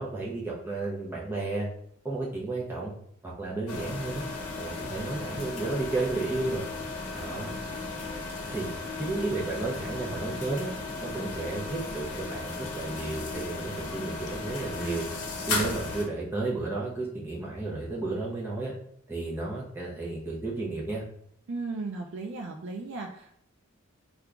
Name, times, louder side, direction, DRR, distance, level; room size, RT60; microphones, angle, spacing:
voice 1, 0.0-1.7 2.0-2.9 3.2-4.2 4.6-6.6 7.1-7.5 8.5-8.7 9.0-10.7 11.0-15.1 15.5-18.7 19.1-21.0, right 2 dB, 10° right, -5 dB, 0.7 m, -32 dB
sound 1, 3.7-16.0, left 3 dB, 90° left, 0.8 m, -35 dB
voice 2, 21.5-23.4, right 3 dB, 55° right, 3 dB, 0.4 m, -36 dB
2.8 x 2.4 x 3.4 m, 0.68 s
head